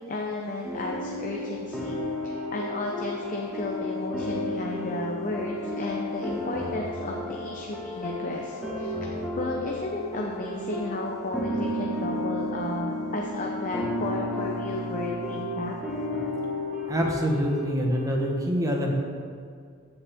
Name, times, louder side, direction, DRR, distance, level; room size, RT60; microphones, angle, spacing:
voice 1, 0.0-8.9 9.4-15.7, left 2 dB, 40° left, -1 dB, 0.8 m, -33 dB
sound 1, 0.6-18.3, left 1 dB, ahead, 1.6 m, -33 dB
voice 2, 16.9-18.9, equal, 15° right, 0 dB, 1.2 m, -25 dB
14.5 x 7.0 x 3.6 m, 2.1 s
head